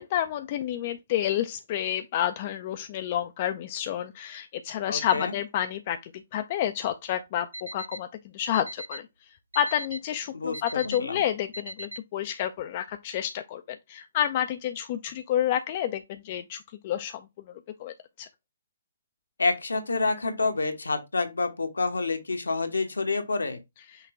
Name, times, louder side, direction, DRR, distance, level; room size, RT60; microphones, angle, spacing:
voice 1, 0.0-8.1 8.3-9.0 9.6-13.6 13.9-17.2 17.8-18.3, left 11 dB, 35° left, 0.3 m, -29 dB
voice 2, 4.9-5.3 10.3-11.2 19.4-23.6, left 3 dB, 75° left, 0.9 m, -28 dB
Alarm, 7.5-8.0 8.5-9.0 9.5-10.0 10.5-11.0 11.5-12.0, right 1 dB, 85° right, 0.3 m, -38 dB
5.8 x 2.2 x 3.6 m
figure-of-eight pair, 130°, 0 cm